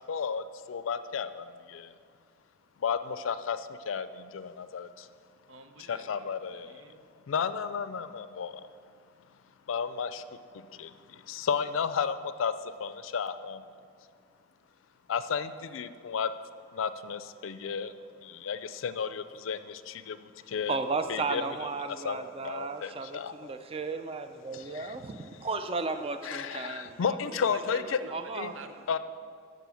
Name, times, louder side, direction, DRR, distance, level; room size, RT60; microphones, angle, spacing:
voice 1, 0.1-1.9 2.8-5.1 5.9-6.8 7.3-8.7 9.7-10.2 10.5-12.5 12.8-13.6 15.1-16.3 16.7-17.9 18.2-20.8 21.1-21.4 22.0-23.5 24.5-24.9 26.2-27.8 28.4-28.5 28.9-29.0, left 6 dB, 85° left, 13 dB, 0.4 m, -33 dB
voice 2, 5.5-7.1 27.2-29.0, right 3 dB, 85° right, 7 dB, 0.7 m, -48 dB
voice 3, 20.7-27.4 28.1-28.5, right 3 dB, 30° right, 8 dB, 0.5 m, -34 dB
11.0 x 4.1 x 7.0 m, 2.2 s
head